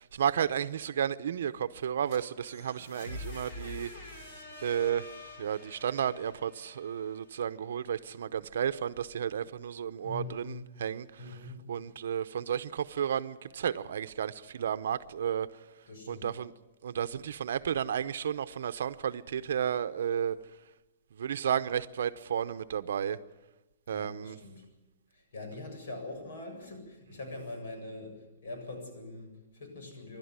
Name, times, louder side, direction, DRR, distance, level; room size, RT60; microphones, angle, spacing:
voice 1, 0.0-3.9 4.6-5.1 5.4-11.1 11.7-15.5 16.1-16.5 16.8-20.4 21.1-23.2 23.9-24.4, right 8 dB, 65° right, 0.8 m, -32 dB
sound 1, 1.8-7.7, left 2 dB, 40° left, 5.5 m, -46 dB
voice 2, 10.0-10.6 11.2-11.6 15.9-16.3 23.9-24.6 25.1-30.2, left 2 dB, 60° left, 7.7 m, -43 dB
27.5 x 12.0 x 9.6 m
hypercardioid pair, 180°, 0 cm